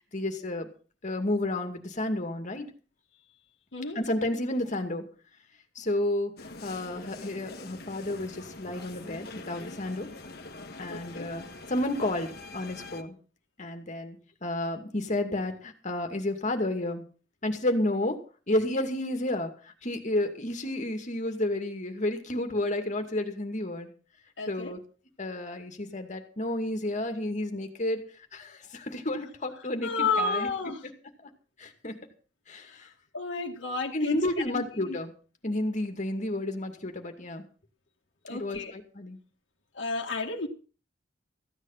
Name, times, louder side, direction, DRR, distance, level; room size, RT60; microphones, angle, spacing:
voice 1, 0.1-0.7 1.0-2.7 3.9-5.0 5.8-6.3 6.6-10.1 10.8-13.2 13.6-17.0 17.4-18.2 18.5-19.5 19.8-23.9 24.5-24.8 25.2-28.0 28.3-30.5 31.2-31.3 31.6-32.0 32.5-32.9 33.9-35.1 35.4-37.4 38.3-39.2, left 1 dB, 40° left, 2.2 m, -31 dB
sound 1, 6.4-13.0, left 2 dB, 60° left, 1.5 m, -44 dB
voice 2, 10.9-11.3 24.4-24.7 29.8-30.8 33.1-34.2 34.5-35.0 38.2-38.7 39.7-40.5, left 3 dB, 80° left, 1.6 m, -31 dB
15.0 x 9.9 x 5.8 m
head